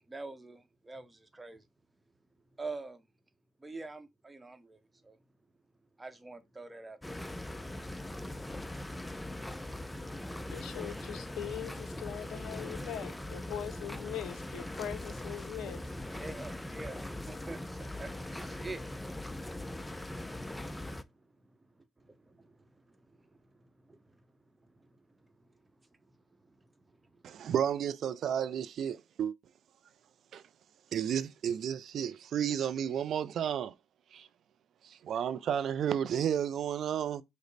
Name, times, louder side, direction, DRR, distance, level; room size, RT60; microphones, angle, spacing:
voice 1, 0.1-1.7 2.6-3.0 3.6-5.2 6.0-7.2 16.1-19.3 21.4-21.5 22.0-24.2 24.8-25.5 26.4-26.6 27.1-27.5, right 3 dB, 20° right, 0.7 m, -47 dB
sound 1, 7.0-21.0, left 1 dB, 10° left, 0.4 m, -41 dB
voice 2, 10.5-15.9, left 10 dB, 75° left, 0.5 m, -41 dB
voice 3, 27.2-29.3 30.3-30.4 30.9-33.7 34.1-34.3 34.8-37.2, right 9 dB, 65° right, 0.3 m, -32 dB
5.1 x 2.0 x 3.9 m
supercardioid pair, 65°, 0 cm